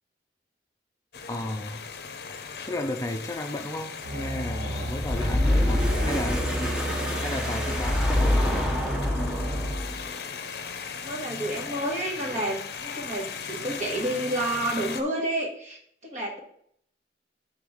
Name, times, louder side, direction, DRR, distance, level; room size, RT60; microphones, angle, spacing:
sound 1, 1.1-15.0, left 6 dB, 60° left, 0.6 m, -38 dB
voice 1, 1.3-1.8 2.7-6.5 7.2-8.8, left 1 dB, 20° left, 4 dB, 0.5 m, -33 dB
sound 2, 4.0-9.8, equal, 80° right, 1.5 m, -33 dB
sound 3, 5.0-10.1, left 1 dB, 5° right, 0.8 m, -26 dB
voice 2, 7.5-7.9 11.0-16.4, right 1 dB, 40° right, 0 dB, 1.6 m, -30 dB
7.9 x 3.9 x 4.9 m, 0.67 s
head